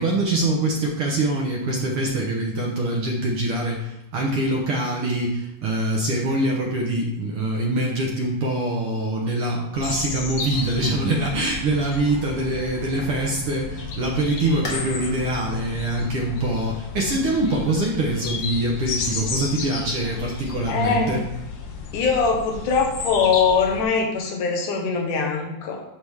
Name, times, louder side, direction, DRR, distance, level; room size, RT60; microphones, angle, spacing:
voice 1, 0.0-21.2, right 1 dB, 60° right, -1 dB, 1.6 m, -24 dB
sound 1, 9.7-23.8, left 4 dB, 65° left, 2.0 m, -33 dB
sound 2, 14.6-20.1, left 2 dB, 45° left, 1.7 m, -41 dB
voice 2, 20.7-21.3 21.9-25.8, left 5 dB, 85° left, 1 dB, 2.7 m, -22 dB
11.5 x 4.0 x 3.5 m, 0.94 s
omnidirectional pair, 3.5 m